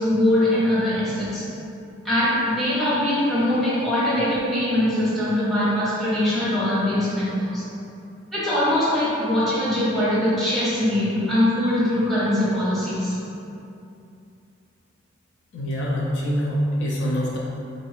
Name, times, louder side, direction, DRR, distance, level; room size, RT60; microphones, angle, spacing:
voice 1, 0.0-1.5 2.0-7.6 8.3-13.2, left 1 dB, ahead, -10 dB, 1.0 m, -22 dB
voice 2, 15.5-17.4, equal, 60° left, -3 dB, 0.5 m, -24 dB
3.8 x 2.6 x 3.2 m, 2.7 s
head